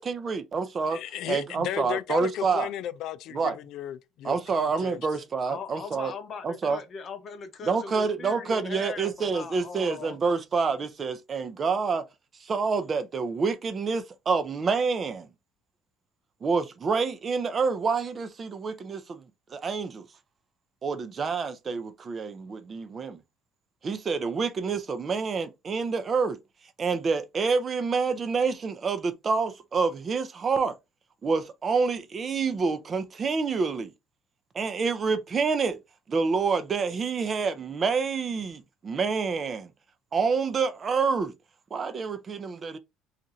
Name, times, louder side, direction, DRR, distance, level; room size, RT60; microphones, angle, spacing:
voice 1, 0.0-1.0 1.3-2.7 3.3-3.6 4.2-6.1 6.4-6.8 7.6-12.0 12.4-15.3 16.4-19.2 19.5-20.1 20.8-23.2 23.8-26.4 26.8-30.8 31.2-33.9 34.5-35.8 36.1-39.7 40.1-41.3 41.7-42.8, right 5 dB, 30° right, 0.4 m, -27 dB
voice 2, 0.9-5.0, left 11 dB, 65° left, 0.4 m, -35 dB
voice 3, 5.5-10.2, left 5 dB, 40° left, 0.7 m, -39 dB
2.6 x 2.5 x 4.2 m
cardioid pair, 145°, 0 cm